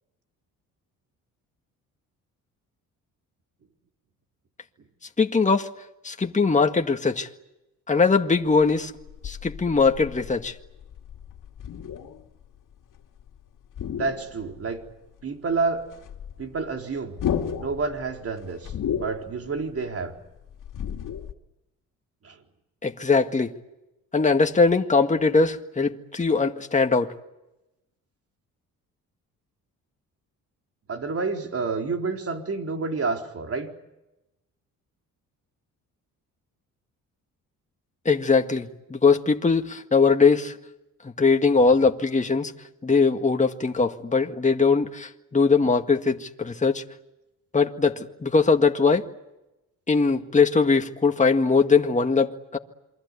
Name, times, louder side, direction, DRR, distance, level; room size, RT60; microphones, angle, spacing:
voice 1, 5.2-5.7 6.0-7.3 7.9-8.9 9.2-10.5 22.8-23.5 24.1-27.1 38.1-40.6 41.0-42.5 42.8-46.8 47.5-49.0 49.9-52.6, left 4 dB, 20° left, 1.8 m, -21 dB
sound 1, 8.5-13.4 13.6-14.9 15.2-15.3 15.6-21.3, left 8 dB, 65° left, 2.6 m, -34 dB
voice 2, 13.9-14.8 15.2-15.9 16.4-17.2 17.5-20.1 22.2-22.4 30.9-33.7, right 4 dB, 45° right, 4.1 m, -29 dB
28.0 x 24.0 x 8.4 m
cardioid pair, 90°, 33 cm